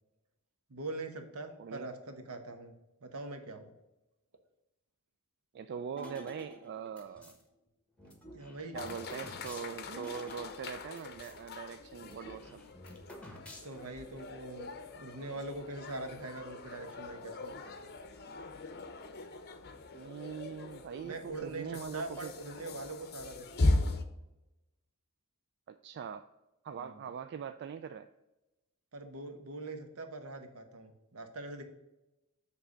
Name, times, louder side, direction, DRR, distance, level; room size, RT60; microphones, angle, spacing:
voice 1, 0.7-2.7 3.0-3.7 8.3-8.8 13.6-14.7 15.0-17.5 17.8-17.9 21.0-21.7 21.9-23.7 26.8-27.0 28.9-31.6, right 2 dB, 75° right, 6 dB, 1.0 m, -42 dB
voice 2, 5.5-7.3 8.7-12.6 19.9-22.4 25.7-26.3 26.6-28.1, right 7 dB, 50° right, 10 dB, 0.3 m, -42 dB
sound 1, 6.0-7.4 8.0-11.4 11.7-11.8 12.0-14.0, left 1 dB, 5° left, 1.2 m, -50 dB
sound 2, 8.7-24.0, left 2 dB, 45° left, 0.7 m, -38 dB
7.4 x 3.4 x 6.4 m, 0.98 s
head